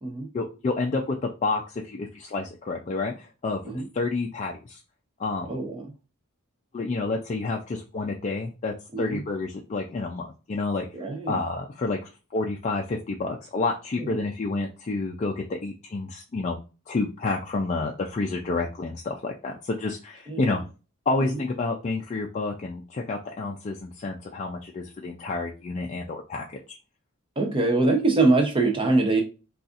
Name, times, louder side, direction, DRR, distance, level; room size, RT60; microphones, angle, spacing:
voice 1, 0.3-3.6 3.9-4.8 5.2-5.5 6.7-10.8 11.3-16.6 16.9-20.6 21.1-26.8, left 3 dB, 35° left, 0 dB, 0.4 m, -29 dB
voice 2, 5.5-5.9 8.9-9.2 10.9-11.4 14.0-14.2 20.3-20.6 21.2-21.4 27.4-29.2, right 2 dB, 25° right, 3 dB, 0.6 m, -24 dB
4.0 x 2.4 x 2.4 m, 0.32 s
head